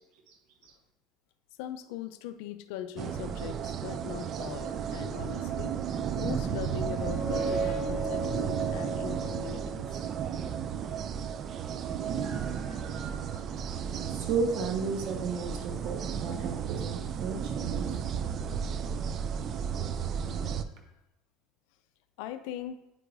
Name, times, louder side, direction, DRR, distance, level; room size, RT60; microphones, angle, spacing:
voice 1, 1.6-5.7 6.1-9.9 16.3-16.4 22.2-22.8, left 11 dB, 80° left, 9 dB, 0.4 m, -40 dB
sound 1, 3.0-20.6, right 7 dB, 45° right, 0.3 m, -33 dB
sound 2, 6.9-10.5, right 2 dB, 55° left, 1.0 m, -36 dB
voice 2, 12.2-13.4 14.1-18.0, right 5 dB, 70° right, 3 dB, 1.1 m, -34 dB
8.8 x 4.6 x 2.6 m, 0.89 s
supercardioid pair, 115°, 0 cm